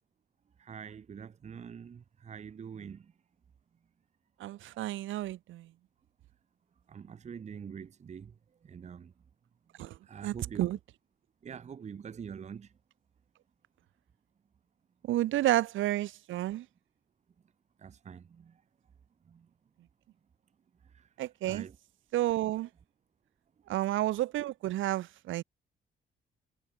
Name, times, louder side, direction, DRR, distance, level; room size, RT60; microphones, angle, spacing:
voice 1, 0.6-3.1 4.7-4.8 6.9-8.3 8.6-9.1 10.1-10.7 11.4-12.7 17.8-18.5 19.3-19.5 20.9-21.0 21.5-21.7, right 7 dB, 35° right, 0.7 m, -45 dB
voice 2, 4.4-5.7 9.8-10.0 10.2-10.8 15.0-16.7 21.2-21.7 22.1-22.7 23.7-25.4, right 14 dB, 80° right, 0.9 m, -31 dB
cardioid pair, 90°, 20 cm